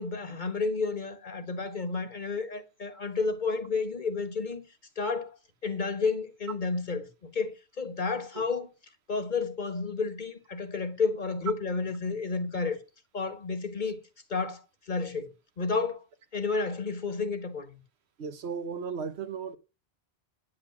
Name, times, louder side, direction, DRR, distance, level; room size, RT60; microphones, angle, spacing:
voice 1, 0.0-4.6 5.0-5.3 5.6-8.7 9.1-12.8 13.1-14.0 14.3-15.3 15.6-16.0 16.3-17.8, left 4 dB, 50° left, 1.6 m, -31 dB
voice 2, 18.2-19.6, right 6 dB, 85° right, 1.3 m, -35 dB
9.8 x 8.0 x 5.9 m
omnidirectional pair, 1.0 m